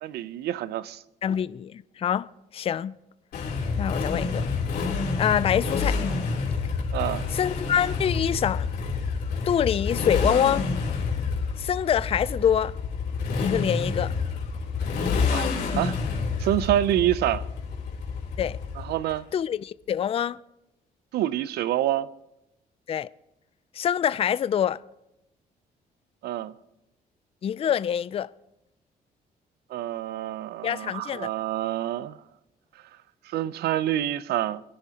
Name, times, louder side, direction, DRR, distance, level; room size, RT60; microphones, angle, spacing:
voice 1, 0.0-1.0 6.9-7.2 15.3-15.9 16.4-17.5 18.8-19.3 21.1-22.1 26.2-26.5 29.7-32.2 33.3-34.6, right 12 dB, 85° right, 0.5 m, -27 dB
voice 2, 1.2-2.3 2.5-2.9 3.8-4.5 5.2-6.0 7.3-8.7 9.5-10.7 11.6-12.7 13.4-14.1 18.4-18.6 19.3-20.4 22.9-23.1 23.7-24.8 27.4-28.3 30.6-31.3, left 9 dB, 35° left, 0.4 m, -25 dB
Motorcycle, 3.3-19.1, left 4 dB, 80° left, 3.3 m, -28 dB
23.0 x 11.0 x 2.9 m
cardioid pair, 85°, 16 cm